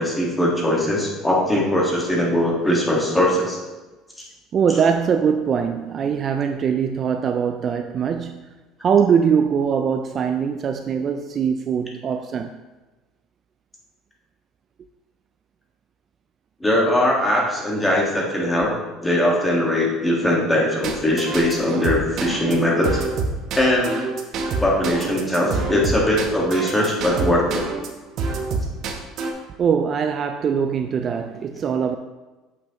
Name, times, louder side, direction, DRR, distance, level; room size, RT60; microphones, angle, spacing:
voice 1, 0.0-3.6 16.6-18.7 19.0-23.0 23.5-23.9 24.6-27.6, left 1 dB, 10° left, 1.6 m, -20 dB
voice 2, 4.5-8.5 8.8-12.6 29.6-32.0, right 7 dB, 35° right, 0.3 m, -22 dB
sound 1, 20.8-27.9 28.2-29.3, right 4 dB, 50° right, 0.9 m, -26 dB
7.5 x 5.9 x 2.9 m
cardioid pair, 135°, 0 cm